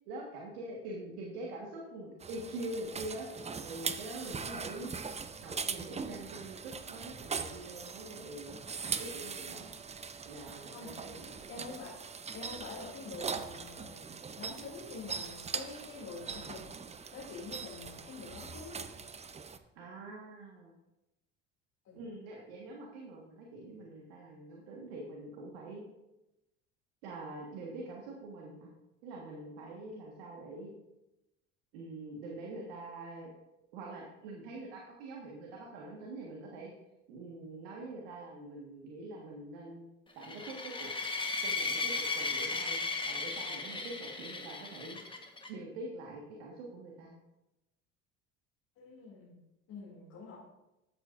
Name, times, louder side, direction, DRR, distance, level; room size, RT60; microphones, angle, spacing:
voice 1, 0.0-3.3 3.6-4.9 5.4-8.6 8.8-9.7 10.2-11.7 19.7-20.7 22.0-25.8 27.0-28.7 29.0-30.7 31.7-33.3 33.7-36.7 37.1-39.9 40.1-40.9 41.4-45.0 45.5-47.1, right 2 dB, 85° right, -1 dB, 1.6 m, -44 dB
sound 1, 2.2-19.6, right 5 dB, 20° right, 0.6 m, -41 dB
voice 2, 11.5-12.0 12.3-14.1 14.4-16.6 17.1-18.8 21.8-22.0 48.8-49.4 49.7-50.4, left 3 dB, 60° left, -6 dB, 2.7 m, -46 dB
sound 2, 40.2-45.5, left 3 dB, 15° left, 1.3 m, -36 dB
13.0 x 8.3 x 2.6 m, 0.95 s
hypercardioid pair, 75°, 30 cm